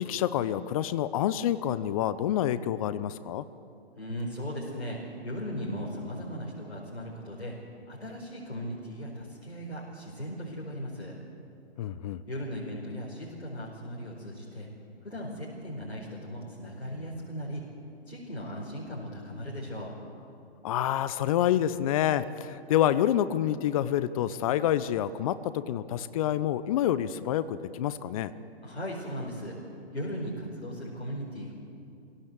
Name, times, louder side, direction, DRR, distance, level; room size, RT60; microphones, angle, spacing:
voice 1, 0.0-3.4 11.8-12.2 20.6-28.3, left 11 dB, 35° left, 15 dB, 0.7 m, -27 dB
voice 2, 4.0-7.5 7.9-11.1 12.3-14.7 15.0-17.6 18.1-20.0 28.6-29.6 29.9-31.5, equal, 80° left, -4 dB, 4.7 m, -37 dB
23.0 x 17.0 x 8.0 m, 2.6 s
figure-of-eight pair, 130°, 32 cm